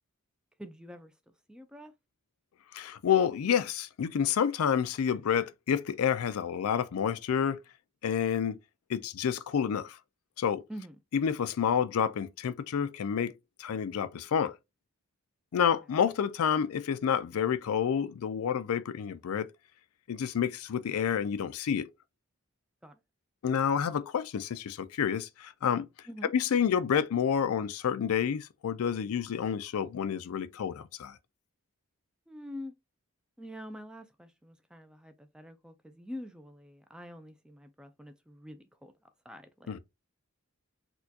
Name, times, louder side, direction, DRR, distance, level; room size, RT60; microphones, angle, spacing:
voice 1, 0.6-1.1 1.5-1.9 10.7-11.0 15.5-15.6 22.8-23.0 26.1-26.3 32.3-32.7 33.4-38.9 39.2-39.8, equal, 5° right, 0.3 m, -46 dB
voice 2, 2.7-7.6 8.0-8.6 8.9-10.0 10.4-10.6 11.1-13.3 13.6-14.6 15.5-19.5 20.1-21.9 23.4-25.9 26.3-31.2 39.7-39.8, left 8 dB, 80° left, 0.4 m, -29 dB
4.3 x 2.3 x 2.7 m
head